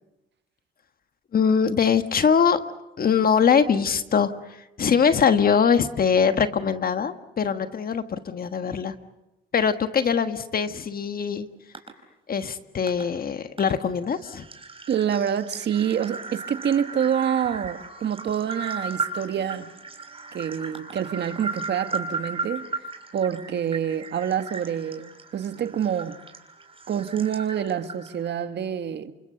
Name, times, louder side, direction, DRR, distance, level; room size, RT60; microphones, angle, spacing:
voice 1, 1.3-2.6 3.0-8.9 9.5-11.5 12.3-14.5, left 6 dB, 50° left, 1.5 m, -22 dB
sound 1, 11.7-11.9 12.9-13.0 13.6-13.7 14.1-28.3, right 4 dB, 30° right, 4.6 m, -36 dB
voice 2, 14.9-19.7 20.3-22.7 23.1-26.2 26.9-29.1, right 8 dB, 60° right, 1.6 m, -27 dB
28.0 x 25.0 x 6.8 m
cardioid pair, 90°, 20 cm